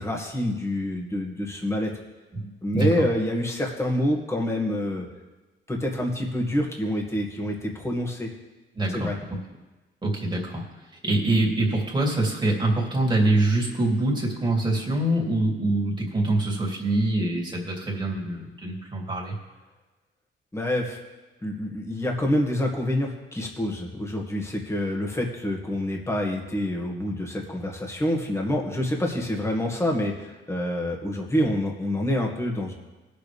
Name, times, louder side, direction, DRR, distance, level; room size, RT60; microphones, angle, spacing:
voice 1, 0.0-1.9 2.6-5.1 5.7-8.3 8.9-9.2 20.5-21.0 21.4-32.7, left 1 dB, 15° left, 0 dB, 1.9 m, -27 dB
voice 2, 2.3-3.0 8.8-9.1 10.0-10.7 11.0-19.4, right 2 dB, 20° right, -2 dB, 2.8 m, -24 dB
20.0 x 6.8 x 3.5 m, 1.2 s
cardioid pair, 100°, 21 cm